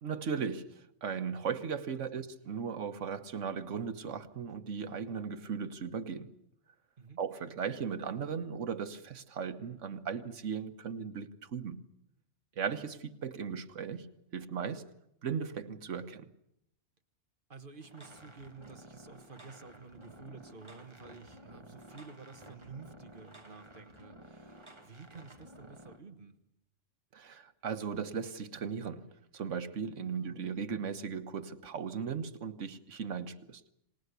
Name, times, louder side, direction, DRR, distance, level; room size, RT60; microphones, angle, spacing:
voice 1, 0.0-6.3 7.2-11.9 12.6-14.9 15.2-16.3 27.1-33.6, right 6 dB, 90° right, 1.5 m, -37 dB
voice 2, 17.5-26.3 30.1-30.4, right 4 dB, 45° right, 1.8 m, -51 dB
sound 1, 17.8-26.0, right 1 dB, 25° right, 1.9 m, -54 dB
25.5 x 19.5 x 8.2 m
omnidirectional pair, 1.2 m